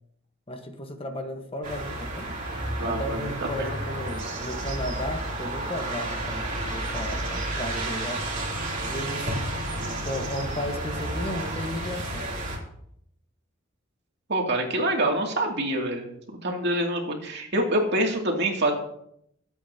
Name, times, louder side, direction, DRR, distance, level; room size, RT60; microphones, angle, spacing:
voice 1, 0.5-2.4 2.8-8.4 8.8-9.3 9.8-12.4, left 1 dB, 30° left, 5 dB, 1.2 m, -34 dB
sound 1, 1.6-12.6, right 1 dB, 40° right, 3.1 m, -31 dB
voice 2, 2.8-3.7 4.2-4.4 14.3-18.7, right 1 dB, 55° right, 1 dB, 2.5 m, -26 dB
23.5 x 8.4 x 2.8 m, 0.72 s
head